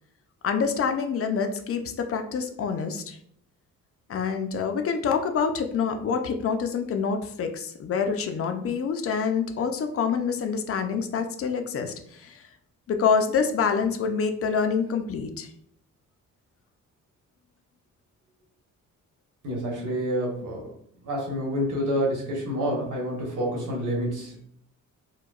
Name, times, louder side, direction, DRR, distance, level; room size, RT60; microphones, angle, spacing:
voice 1, 0.4-3.2 4.1-12.5 12.9-15.5, left 6 dB, 50° left, 6 dB, 0.5 m, -26 dB
voice 2, 19.4-20.7 21.0-24.4, equal, 85° right, -2 dB, 1.4 m, -28 dB
4.6 x 2.2 x 2.4 m, 0.66 s
cardioid pair, 130°, 30 cm